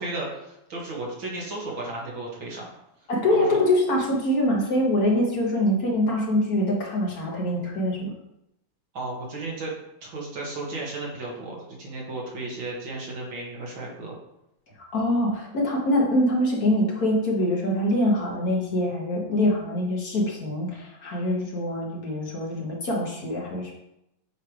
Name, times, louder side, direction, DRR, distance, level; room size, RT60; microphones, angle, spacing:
voice 1, 0.0-2.7 3.3-3.6 8.9-9.8 10.0-14.2, right 2 dB, 80° right, -3 dB, 2.4 m, -34 dB
voice 2, 3.1-8.1 14.9-23.7, left 1 dB, 50° left, -2 dB, 1.6 m, -24 dB
8.1 x 3.2 x 4.8 m, 0.84 s
omnidirectional pair, 2.1 m